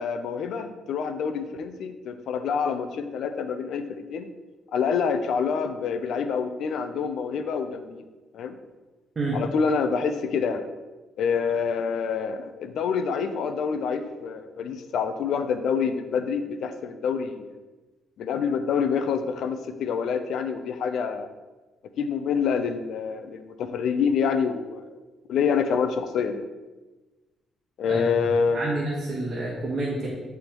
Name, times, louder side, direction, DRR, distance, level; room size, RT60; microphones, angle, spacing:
voice 1, 0.0-4.3 4.7-8.0 8.3-8.6 9.3-10.7 11.2-17.5 18.2-21.3 22.0-24.9 25.3-26.4 27.8-28.6, left 6 dB, 75° left, 9 dB, 0.4 m, -27 dB
voice 2, 28.5-30.1, right 2 dB, 35° right, -4 dB, 1.3 m, -28 dB
9.5 x 3.4 x 3.0 m, 1.2 s
cardioid pair, 90°, 0 cm